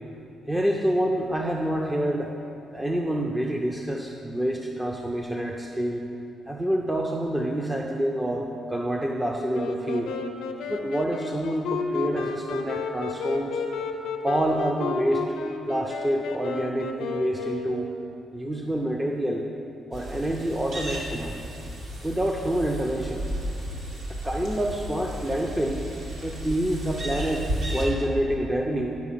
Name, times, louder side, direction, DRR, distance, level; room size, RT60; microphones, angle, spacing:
voice 1, 0.5-2.3 2.7-6.0 6.5-10.1 10.7-13.6 14.2-15.2 15.7-17.9 18.3-19.5 19.9-21.4 22.0-23.2 24.1-25.8 26.2-29.0, right 1 dB, 10° right, 1 dB, 0.6 m, -27 dB
Wind instrument woodwind instrument, 9.5-18.3, left 5 dB, 85° left, 0.7 m, -32 dB
sound 1, 19.9-27.9, equal, 65° right, 2.1 m, -34 dB
10.5 x 5.7 x 5.6 m, 2.9 s
cardioid pair, 90°, 0 cm